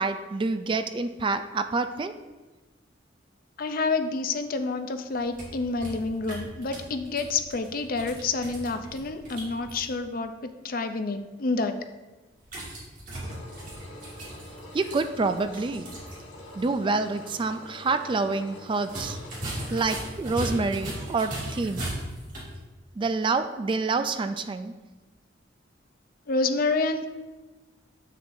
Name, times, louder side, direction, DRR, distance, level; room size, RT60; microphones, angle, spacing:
voice 1, 0.0-2.1 14.7-15.9 16.5-19.2 19.7-21.9 23.0-24.7, right 3 dB, 25° right, 9 dB, 0.3 m, -27 dB
voice 2, 3.6-10.3 10.6-11.8 26.3-27.1, left 3 dB, 50° left, 8 dB, 0.5 m, -28 dB
sound 1, 5.1-9.8 12.4-16.2 16.5-16.6 18.8-22.6, right 1 dB, 45° right, 2.2 m, -38 dB
Engine, 13.2-20.0, left 1 dB, 85° left, 1.8 m, -45 dB
9.0 x 6.5 x 2.6 m, 1.2 s
head